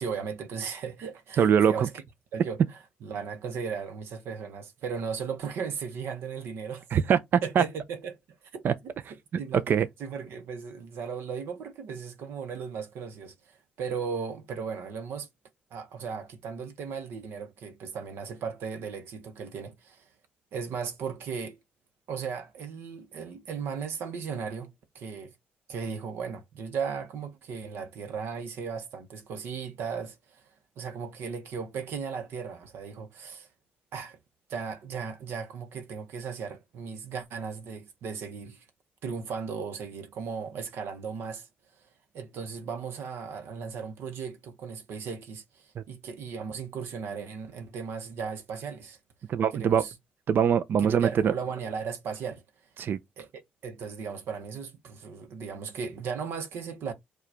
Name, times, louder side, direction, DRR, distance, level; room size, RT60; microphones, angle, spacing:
voice 1, 0.0-1.9 2.3-2.6 3.0-6.9 7.4-8.2 8.5-8.9 9.4-9.6 10.0-15.3 15.7-20.1 20.5-21.6 22.1-24.7 24.9-25.3 25.7-30.5 30.8-33.5 33.9-34.2 34.5-38.7 39.0-41.5 41.8-41.9 42.1-49.0 49.6-49.9 50.8-52.4 53.2-53.3 53.6-56.9, right 6 dB, 80° right, 0.8 m, -36 dB
voice 2, 1.4-1.9 6.9-7.6 8.6-8.7 9.7-9.9 45.8-45.9 49.3-49.9 50.3-51.3 52.8-53.0, right 8 dB, 60° right, 0.4 m, -23 dB
4.6 x 2.3 x 4.8 m
cardioid pair, 90°, 4 cm